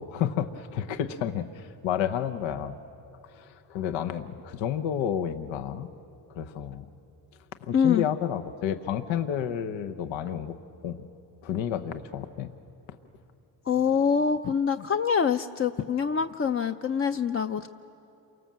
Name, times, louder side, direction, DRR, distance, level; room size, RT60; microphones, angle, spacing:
voice 1, 0.0-2.8 3.3-5.9 6.4-6.8 7.6-10.5 10.8-11.1 11.4-12.5, left 9 dB, 80° left, 8 dB, 1.0 m, -30 dB
voice 2, 7.7-8.1 13.7-17.7, left 6 dB, 30° left, 7 dB, 0.6 m, -25 dB
28.5 x 24.0 x 7.5 m, 2.8 s
cardioid pair, 80°, 45 cm